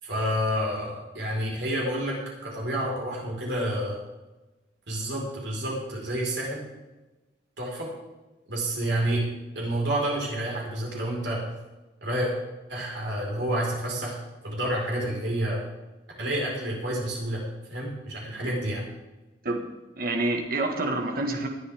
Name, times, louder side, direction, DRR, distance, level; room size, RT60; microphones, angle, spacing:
voice 1, 0.0-2.2 2.4-4.0 4.9-6.6 7.6-7.9 8.5-9.3 9.5-11.4 12.0-12.3 12.7-14.2 14.4-15.6 16.2-18.8, right 1 dB, 85° right, -2 dB, 4.7 m, -29 dB
voice 2, 20.0-21.5, right 2 dB, 55° right, 3 dB, 1.7 m, -28 dB
19.5 x 10.5 x 3.6 m, 1.1 s
head